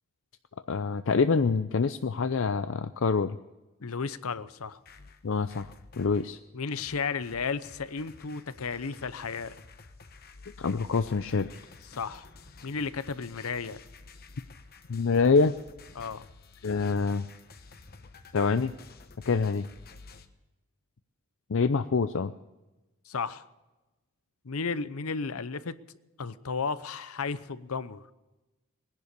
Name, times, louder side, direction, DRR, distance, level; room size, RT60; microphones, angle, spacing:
voice 1, 0.7-3.4 5.2-6.4 10.6-11.6 14.9-15.6 16.6-17.3 18.3-18.7 19.3-19.7 21.5-22.3, left 4 dB, 60° left, 10 dB, 0.5 m, -26 dB
voice 2, 3.8-4.8 6.5-9.5 11.9-12.3 12.6-13.8 15.9-16.2 23.1-23.5 24.4-25.8 26.2-28.1, left 5 dB, 90° left, 14 dB, 0.8 m, -33 dB
sound 1, 4.6-6.3 6.8-20.3, left 4 dB, 45° left, 1.1 m, -51 dB
19.5 x 11.0 x 6.8 m, 1.1 s
head